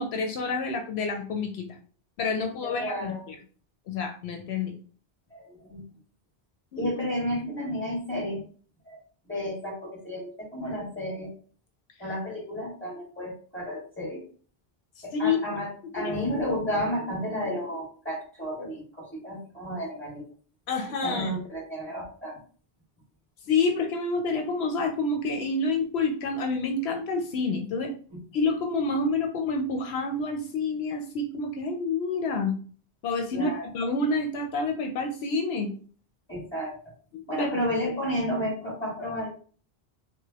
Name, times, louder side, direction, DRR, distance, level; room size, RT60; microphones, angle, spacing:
voice 1, 0.0-1.7 2.2-3.4 3.9-4.7 6.7-6.9 15.0-15.4 16.0-16.1 20.7-21.3 23.5-27.9 28.3-32.5 33.0-35.7 37.1-37.5, left 3 dB, 80° left, 4 dB, 0.8 m, -28 dB
voice 2, 2.6-3.2 5.3-5.8 6.8-8.4 8.9-9.0 9.3-11.3 12.0-14.2 15.0-20.2 21.0-22.4 28.1-28.2 33.3-33.7 36.3-36.8 37.3-39.3, equal, 10° left, -5 dB, 1.8 m, -32 dB
4.8 x 2.1 x 2.9 m, 0.43 s
omnidirectional pair, 1.1 m